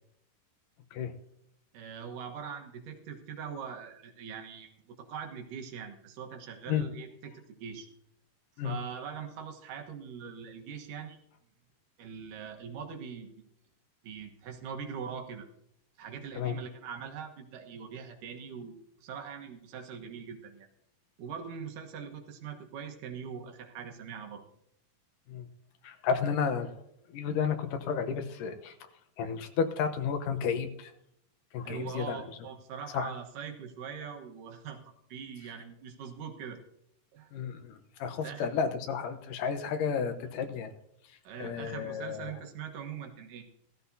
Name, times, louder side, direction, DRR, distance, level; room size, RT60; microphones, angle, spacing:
voice 1, 1.7-7.9 8.6-11.2 12.0-13.4 14.0-15.5 16.0-20.7 21.2-24.4 31.6-36.6 37.1-37.3 38.2-38.5 41.2-43.5, right 7 dB, 85° right, 4 dB, 2.9 m, -42 dB
voice 2, 25.8-26.7 27.1-28.7 29.2-30.9 31.5-32.2 32.9-33.1 37.3-40.7 41.1-42.3, left 6 dB, 85° left, 7 dB, 2.6 m, -32 dB
16.0 x 14.0 x 2.7 m, 0.75 s
omnidirectional pair, 3.7 m